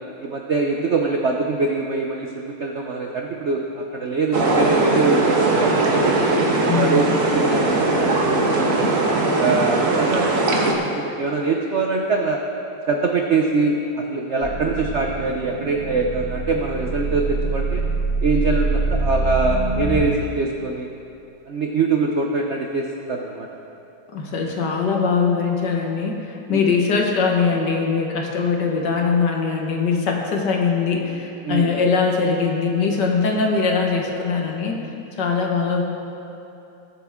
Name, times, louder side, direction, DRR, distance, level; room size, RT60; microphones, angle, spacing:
voice 1, 0.2-6.2 6.6-10.3 10.8-12.4 12.9-17.8 18.2-20.9 21.5-23.5 26.5-26.7 31.4-31.7, right 3 dB, 80° right, 1 dB, 0.6 m, -23 dB
sound 1, 4.3-10.7, right 2 dB, 45° right, 1.4 m, -19 dB
voice 2, 6.7-7.0 24.1-34.8 35.2-35.8, left 5 dB, 60° left, 1 dB, 1.8 m, -21 dB
sound 2, 14.4-20.0, right 3 dB, 40° left, 2.8 m, -25 dB
20.5 x 8.0 x 3.6 m, 2.8 s
omnidirectional pair, 2.3 m